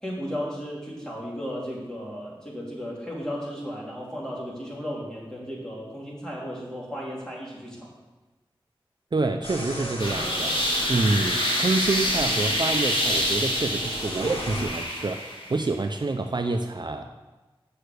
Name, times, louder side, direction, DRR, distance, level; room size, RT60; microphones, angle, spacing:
voice 1, 0.0-7.9, equal, 5° left, -5 dB, 3.8 m, -35 dB
voice 2, 9.1-17.1, right 3 dB, 50° right, 6 dB, 0.6 m, -27 dB
sound 1, 9.4-14.6, equal, 90° left, 2.1 m, -37 dB
sound 2, 10.0-15.6, equal, 60° left, 2.4 m, -26 dB
7.8 x 6.6 x 6.7 m, 1.2 s
wide cardioid pair, 50°, 10 cm